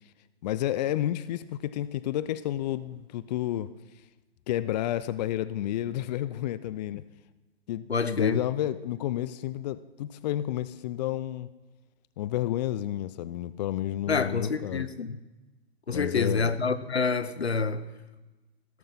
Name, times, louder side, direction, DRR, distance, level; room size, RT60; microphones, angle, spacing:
voice 1, 0.4-3.7 4.5-7.0 7.7-11.5 12.2-14.9 15.9-16.6, left 13 dB, 40° left, 0.6 m, -31 dB
voice 2, 7.9-8.4 14.1-15.2 15.9-17.9, left 4 dB, 85° left, 1.1 m, -27 dB
16.5 x 13.0 x 5.5 m
figure-of-eight pair, 115°, 31 cm